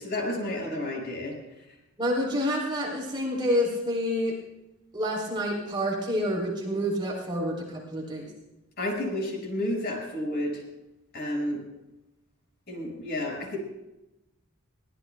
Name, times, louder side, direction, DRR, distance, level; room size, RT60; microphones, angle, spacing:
voice 1, 0.0-1.4 8.8-10.6 11.1-11.6 12.7-13.6, left 1 dB, 50° left, 0 dB, 5.8 m, -31 dB
voice 2, 2.0-4.3 4.9-8.3, equal, 20° right, -2 dB, 3.5 m, -28 dB
22.5 x 17.5 x 2.3 m, 0.94 s
head